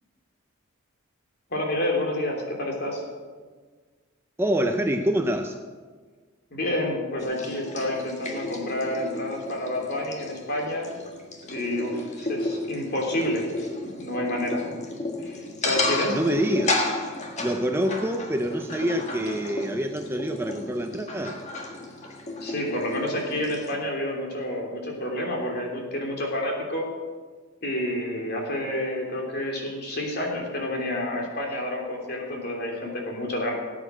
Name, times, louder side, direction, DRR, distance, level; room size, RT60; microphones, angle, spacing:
voice 1, 1.5-3.0 6.5-10.9 11.5-13.5 14.0-14.6 15.2-16.2 22.4-26.8 27.6-33.5, left 1 dB, 50° left, 0 dB, 3.2 m, -29 dB
voice 2, 4.4-5.6 16.1-16.9 17.4-21.4 31.5-31.6, right 1 dB, 10° right, 5 dB, 0.6 m, -26 dB
sound 1, 7.2-23.7, left 2 dB, 30° left, 1.7 m, -33 dB
18.0 x 8.7 x 6.4 m, 1.5 s
head